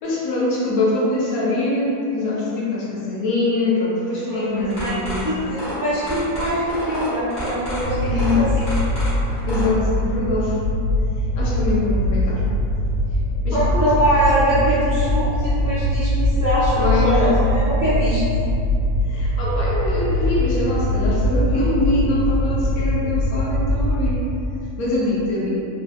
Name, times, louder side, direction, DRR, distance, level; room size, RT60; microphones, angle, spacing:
voice 1, 0.0-5.3 8.0-8.5 9.5-10.6 11.4-12.4 13.4-13.7 16.8-17.2 19.0-24.2 24.8-25.6, left 2 dB, 80° left, -6 dB, 1.2 m, -23 dB
voice 2, 4.3-8.5 13.5-18.2, equal, 30° right, -12 dB, 0.3 m, -23 dB
sound 1, 4.6-9.7, equal, 40° left, 1.2 m, -31 dB
sound 2, 7.8-24.2, left 1 dB, 70° right, 1.1 m, -22 dB
3.2 x 2.6 x 2.3 m, 2.7 s
omnidirectional pair, 1.5 m